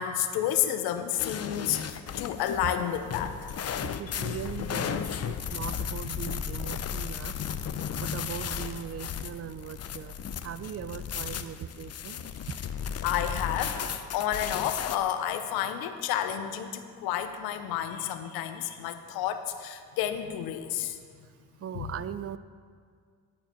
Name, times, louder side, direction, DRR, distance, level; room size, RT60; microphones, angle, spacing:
voice 1, 0.0-3.3 13.0-21.0 21.7-21.9, left 10 dB, 90° left, 9 dB, 0.7 m, -30 dB
sound 1, 1.2-15.0, left 8 dB, 45° left, 0.6 m, -35 dB
voice 2, 4.0-7.4 8.0-10.2 10.4-12.2 21.6-22.4, right 9 dB, 40° right, 15 dB, 0.4 m, -39 dB
11.5 x 4.2 x 7.3 m, 2.1 s
supercardioid pair, 55°, 36 cm